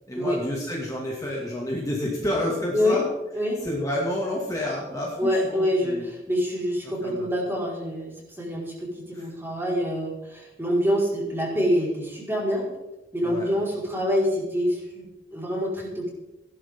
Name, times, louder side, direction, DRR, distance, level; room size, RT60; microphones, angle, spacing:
voice 1, 0.1-3.0 3.6-6.1 7.0-7.3 9.1-9.2 13.2-13.5, left 1 dB, 20° left, -3 dB, 2.3 m, -29 dB
voice 2, 5.2-12.7 13.1-15.0 15.3-16.1, equal, 15° right, -4 dB, 4.9 m, -26 dB
16.5 x 11.5 x 3.8 m, 0.94 s
head